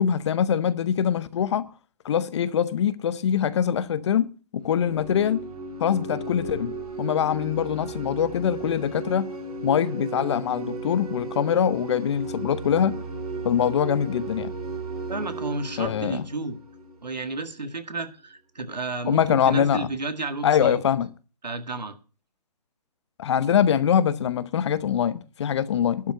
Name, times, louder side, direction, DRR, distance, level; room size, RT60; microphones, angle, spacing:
voice 1, 0.0-1.7 2.0-4.3 4.5-5.4 5.8-6.7 7.0-9.3 9.6-12.9 13.4-14.5 15.8-16.3 19.1-19.9 20.4-21.1 23.2-26.1, left 8 dB, 45° left, 0.9 m, -23 dB
sound 1, 4.6-17.3, right 2 dB, 60° right, 4.3 m, -35 dB
voice 2, 15.1-16.6 17.0-20.8 21.4-22.0, right 3 dB, 90° right, 1.9 m, -32 dB
11.5 x 6.2 x 8.9 m
figure-of-eight pair, 145°, 21 cm